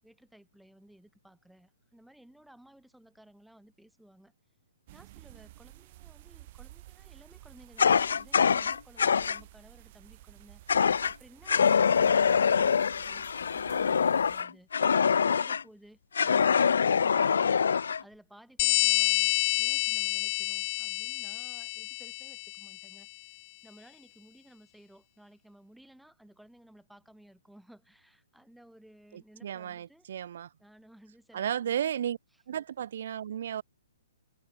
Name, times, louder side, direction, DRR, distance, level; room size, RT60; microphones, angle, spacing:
voice 1, 0.0-4.3 4.9-14.7 15.1-17.6 18.0-23.3 23.6-30.1 30.6-31.8, right 1 dB, ahead, 7.3 m, -57 dB
sound 1, 4.9-14.4, right 17 dB, 35° right, 3.3 m, -53 dB
Fire, 7.8-9.4 10.7-11.1 11.5-15.6 16.1-18.0, left 6 dB, 80° left, 1.1 m, -24 dB
sound 2, 18.6-22.9, left 28 dB, 25° left, 0.6 m, -28 dB
voice 2, 29.1-30.5 31.3-32.2 32.5-33.6, right 9 dB, 50° right, 3.3 m, -34 dB
hypercardioid pair, 165°, 0 cm